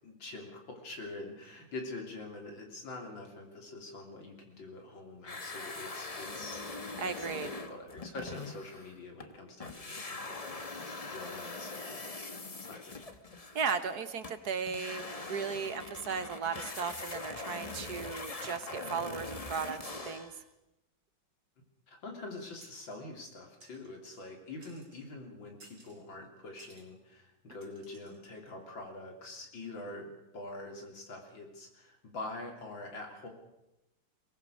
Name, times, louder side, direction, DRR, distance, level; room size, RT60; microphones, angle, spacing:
voice 1, 0.0-6.6 7.2-12.0 12.7-13.0 21.9-33.3, left 2 dB, 75° left, 3 dB, 4.0 m, -45 dB
sound 1, 5.2-9.3 9.6-20.4, left 3 dB, 25° left, 0.9 m, -42 dB
voice 2, 7.0-7.5 13.5-20.3, right 6 dB, 55° right, 11 dB, 1.6 m, -36 dB
sound 2, 22.6-23.0 23.6-24.3 24.6-25.1 25.6-26.0 26.6-26.9 27.6-28.2, right 3 dB, 75° right, 4.0 m, -59 dB
22.5 x 19.0 x 6.4 m, 0.93 s
omnidirectional pair, 2.1 m